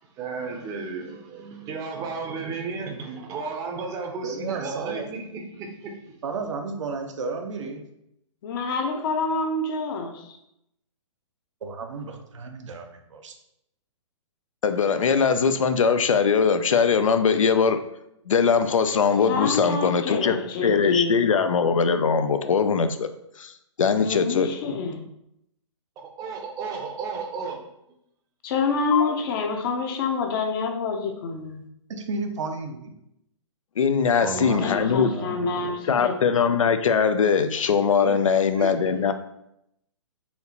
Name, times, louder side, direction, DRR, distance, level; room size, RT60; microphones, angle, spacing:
voice 1, 0.2-6.0 26.0-27.6 37.6-38.2 38.6-38.8, right 4 dB, 20° right, 2 dB, 0.6 m, -34 dB
voice 2, 4.2-5.1 6.2-7.8 11.6-13.3 31.9-32.8 34.2-35.5, right 4 dB, 65° right, 5 dB, 0.7 m, -33 dB
voice 3, 8.4-10.4 19.3-21.2 24.0-25.0 28.4-31.6 34.6-36.1, left 4 dB, 45° left, 3 dB, 0.7 m, -27 dB
voice 4, 14.6-17.8 18.3-20.4 20.6-23.1 23.4-23.5 23.8-24.5 33.8-35.2 35.9-39.1, left 6 dB, 80° left, 9 dB, 0.4 m, -21 dB
4.3 x 2.8 x 2.8 m, 0.80 s
hypercardioid pair, 125°, 17 cm